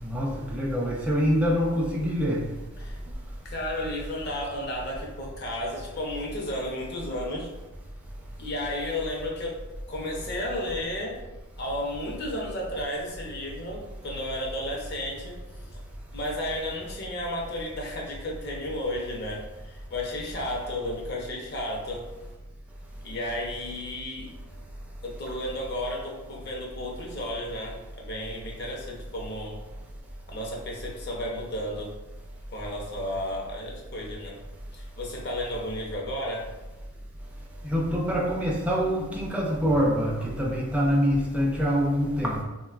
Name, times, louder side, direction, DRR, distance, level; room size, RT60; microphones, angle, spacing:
voice 1, 0.0-2.5 37.7-42.4, equal, 5° right, -3 dB, 0.3 m, -25 dB
voice 2, 3.4-7.5 8.4-11.2 11.6-15.4 16.1-22.1 23.0-24.3 25.0-29.6 30.3-31.9 32.5-34.4 34.7-36.5, left 1 dB, 50° left, -2 dB, 0.6 m, -33 dB
3.5 x 2.2 x 2.3 m, 1.1 s
head